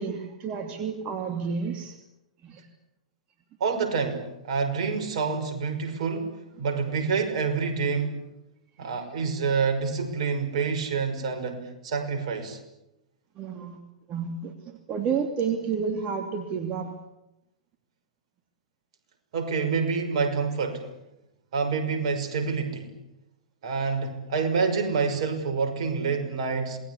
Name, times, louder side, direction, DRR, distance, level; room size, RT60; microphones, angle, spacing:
voice 1, 0.0-2.0 2.4-2.7 8.8-9.1 13.3-13.8 14.1-17.0, right 6 dB, 30° right, 6 dB, 3.0 m, -31 dB
voice 2, 3.6-8.2 8.8-12.6 19.3-20.8 21.5-22.9 23.6-26.8, right 5 dB, 60° right, 7 dB, 5.8 m, -27 dB
27.5 x 20.5 x 8.6 m, 0.88 s
hypercardioid pair, 115°, 4 cm